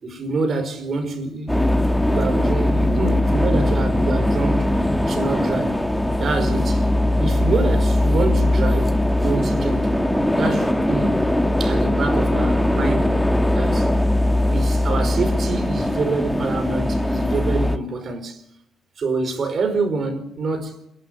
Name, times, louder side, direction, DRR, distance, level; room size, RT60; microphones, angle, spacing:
voice 1, 0.0-4.7 5.1-5.8 6.2-6.8 7.2-9.9 10.4-11.2 11.6-13.2 13.5-13.9 14.5-18.4 19.0-20.8, right 3 dB, 50° right, 4.9 m, -26 dB
sound 1, 1.5-17.8, left 1 dB, 5° left, 1.5 m, -20 dB
26.5 x 12.0 x 9.6 m
cardioid pair, 90°, 0 cm